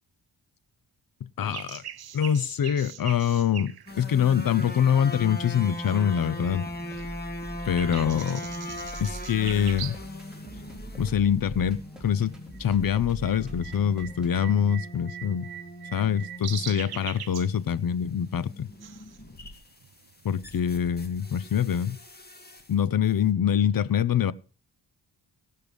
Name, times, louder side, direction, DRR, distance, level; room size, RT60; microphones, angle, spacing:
voice 1, 1.2-1.8 2.1-6.6 7.6-8.4 9.0-10.0 11.0-15.5 15.9-18.7 20.2-22.0 22.7-24.3, left 8 dB, 55° left, 0.7 m, -25 dB
sound 1, 1.4-5.4 5.9-6.7 7.0-10.2 10.5-10.6 11.3-11.6 11.9-20.9, right 10 dB, 60° right, 0.8 m, -42 dB
sound 2, 3.9-22.8 23.0-23.3, left 1 dB, 25° left, 2.1 m, -41 dB
sound 3, 6.4-14.5, right 1 dB, ahead, 4.1 m, -42 dB
18.5 x 6.7 x 5.1 m
cardioid pair, 75°, 41 cm